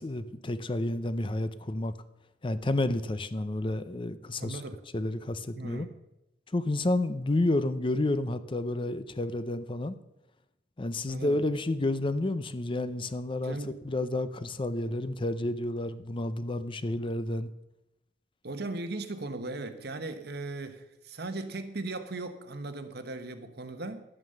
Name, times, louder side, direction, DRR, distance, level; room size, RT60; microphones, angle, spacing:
voice 1, 0.0-1.9 2.4-4.6 4.9-5.9 6.5-9.9 10.8-13.6 13.8-17.5, left 2 dB, 30° left, 0.6 m, -30 dB
voice 2, 4.4-4.8 5.5-5.9 11.0-11.4 13.4-13.8 18.4-24.0, right 2 dB, 60° right, 1.1 m, -38 dB
11.0 x 9.3 x 6.6 m
head